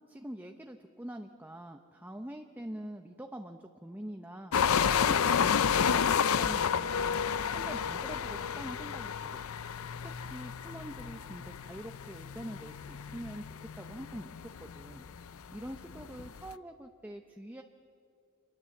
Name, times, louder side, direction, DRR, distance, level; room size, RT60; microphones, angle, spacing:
voice 1, 0.1-7.2 7.5-9.4 10.0-15.1 15.5-17.6, right 1 dB, 10° right, 5 dB, 0.8 m, -45 dB
sound 1, 4.5-16.5, left 7 dB, 70° left, 0.5 m, -31 dB
27.5 x 22.0 x 7.2 m, 2.5 s
head